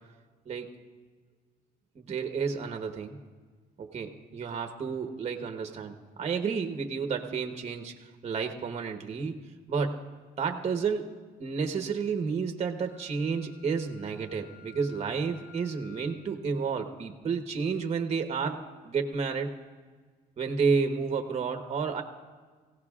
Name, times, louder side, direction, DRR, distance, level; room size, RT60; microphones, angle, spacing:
voice 1, 0.4-0.8 1.9-3.2 3.8-7.9 8.2-9.4 9.7-10.0 10.4-11.1 11.4-19.5 20.4-22.0, right 5 dB, 40° right, 5 dB, 1.2 m, -31 dB
Wind instrument woodwind instrument, 12.8-16.2, left 10 dB, 10° left, 4.3 m, -55 dB
25.0 x 16.5 x 2.4 m, 1.5 s
cardioid pair, 110°, 17 cm